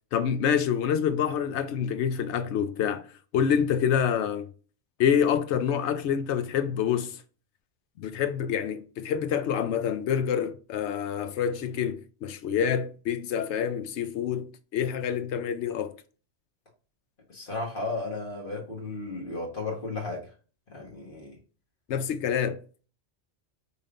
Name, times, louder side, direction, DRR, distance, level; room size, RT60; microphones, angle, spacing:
voice 1, 0.1-3.1 3.3-4.5 5.0-7.2 8.0-14.5 14.7-15.9 21.9-22.6, left 8 dB, 75° left, 0.9 m, -27 dB
voice 2, 17.3-20.2 20.7-21.4, left 3 dB, 50° left, 1.5 m, -34 dB
5.5 x 3.5 x 2.5 m
omnidirectional pair, 1.2 m